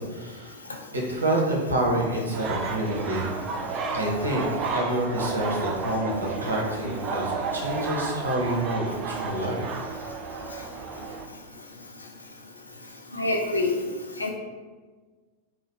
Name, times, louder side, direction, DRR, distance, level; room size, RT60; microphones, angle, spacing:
voice 1, 0.1-0.6 0.9-3.4 3.9-9.7, right 1 dB, 75° right, -2 dB, 0.9 m, -28 dB
sound 1, 2.3-11.3, right 4 dB, 35° right, 0.3 m, -32 dB
voice 2, 13.1-13.8 14.2-14.3, left 2 dB, 80° left, 1 dB, 0.5 m, -25 dB
3.8 x 2.5 x 3.2 m, 1.4 s
figure-of-eight pair, 90°, 0 cm